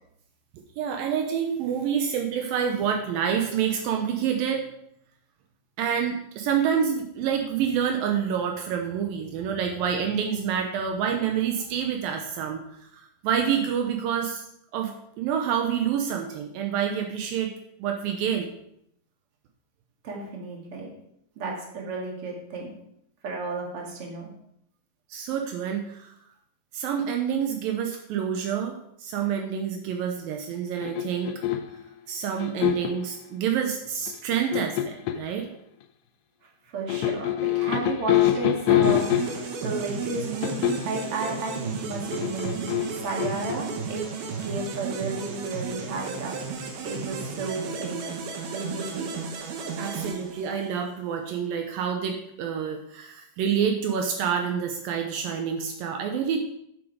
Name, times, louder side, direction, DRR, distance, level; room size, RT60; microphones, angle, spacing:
voice 1, 0.8-4.7 5.8-12.6 12.9-14.4 14.7-17.5 17.8-18.5 25.1-26.1 26.7-28.7 29.0-31.3 32.1-35.5 49.8-56.4, right 8 dB, 90° right, 3 dB, 2.0 m, -27 dB
voice 2, 20.0-20.9 21.4-22.8 23.2-24.3 36.6-44.1 44.4-46.3 46.8-48.2 48.5-49.1, right 3 dB, 40° right, -1 dB, 2.2 m, -33 dB
sound 1, 30.8-31.8 32.4-33.1 34.1-35.3 36.9-39.6 40.4-41.0 42.1-43.6, left 12 dB, 80° left, 2.6 m, -25 dB
sound 2, 38.8-50.9, right 5 dB, 65° right, 2.7 m, -34 dB
11.5 x 7.3 x 4.8 m, 0.76 s
omnidirectional pair, 5.4 m